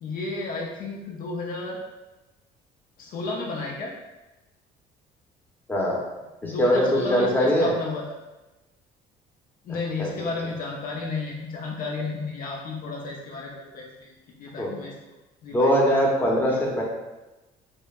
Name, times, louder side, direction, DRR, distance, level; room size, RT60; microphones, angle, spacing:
voice 1, 0.0-1.8 3.0-3.9 6.4-8.0 9.6-14.9 15.4-15.9 16.4-16.8, left 3 dB, 55° left, -2 dB, 0.5 m, -32 dB
voice 2, 5.7-6.0 6.4-7.7 10.0-10.1 14.6-14.7 15.5-16.8, equal, 10° left, -3 dB, 0.8 m, -21 dB
5.2 x 2.1 x 2.4 m, 1.1 s
cardioid pair, 110°, 17 cm